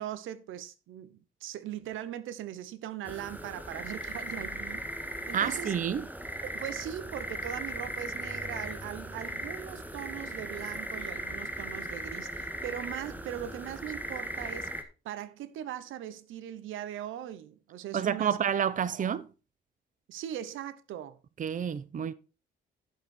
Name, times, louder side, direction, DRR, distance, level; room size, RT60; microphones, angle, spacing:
voice 1, 0.0-4.9 5.3-5.7 6.4-14.7 15.0-18.4 18.9-19.1 20.1-21.2, right 11 dB, 85° right, 0.9 m, -40 dB
sound 1, 3.0-14.8, right 1 dB, 10° right, 1.6 m, -38 dB
voice 2, 5.3-6.1 17.9-19.3 21.4-22.1, right 8 dB, 40° right, 0.7 m, -29 dB
11.5 x 6.8 x 4.3 m
cardioid pair, 90°, 20 cm